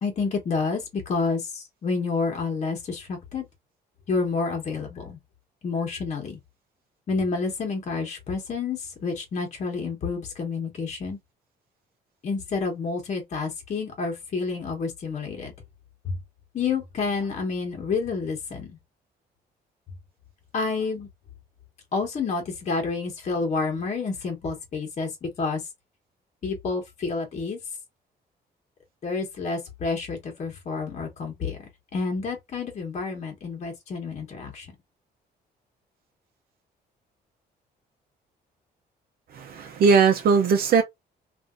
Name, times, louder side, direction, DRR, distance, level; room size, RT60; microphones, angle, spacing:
voice 1, 0.0-3.5 4.1-5.2 5.6-6.4 7.1-11.2 12.2-15.5 16.0-16.2 16.5-18.7 20.5-21.1 21.9-25.6 26.4-27.6 29.0-34.7, left 4 dB, 45° left, 1.2 m, -29 dB
voice 2, 39.3-40.8, right 5 dB, 60° right, 0.6 m, -19 dB
3.4 x 2.6 x 2.5 m
cardioid pair, 145°, 17 cm